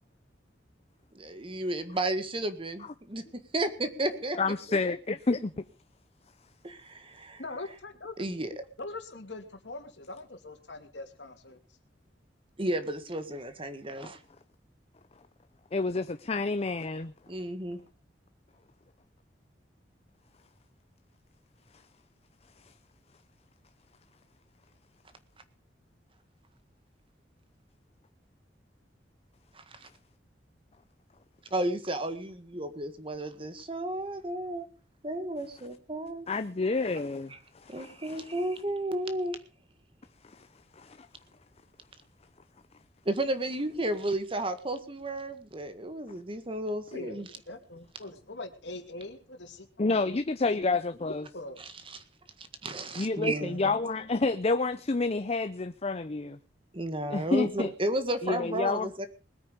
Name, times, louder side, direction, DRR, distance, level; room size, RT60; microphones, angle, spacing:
voice 1, 1.1-4.4 4.7-4.8 6.6-7.4 8.2-8.6 12.6-14.2 17.3-17.8 29.5-29.9 31.5-34.7 35.0-36.3 37.3-37.4 37.7-39.4 43.1-47.3 51.6-52.0 52.4-53.7 56.7-59.1, right 1 dB, 30° right, 1.7 m, -33 dB
voice 2, 4.4-5.6 15.7-17.1 36.3-38.2 40.2-40.5 40.8-41.1 49.8-51.3 53.0-56.4 57.1-57.7 58.2-58.9, left 3 dB, 35° left, 0.7 m, -29 dB
voice 3, 7.4-8.1 8.8-11.6 46.9-50.1 51.3-51.6, left 2 dB, 80° left, 2.6 m, -42 dB
20.5 x 9.1 x 5.2 m
head